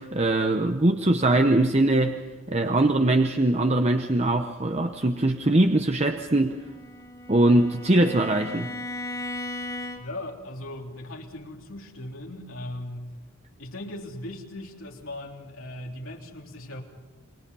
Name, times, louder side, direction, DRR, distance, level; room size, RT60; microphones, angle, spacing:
voice 1, 0.0-2.2 2.5-6.6 7.3-8.7, right 2 dB, 30° right, 6 dB, 0.9 m, -22 dB
Bowed string instrument, 6.5-10.3, left 2 dB, 15° left, 2.2 m, -37 dB
voice 2, 10.0-13.1 13.6-16.8, left 1 dB, 85° left, 0 dB, 3.5 m, -38 dB
29.0 x 22.0 x 5.5 m, 1.2 s
head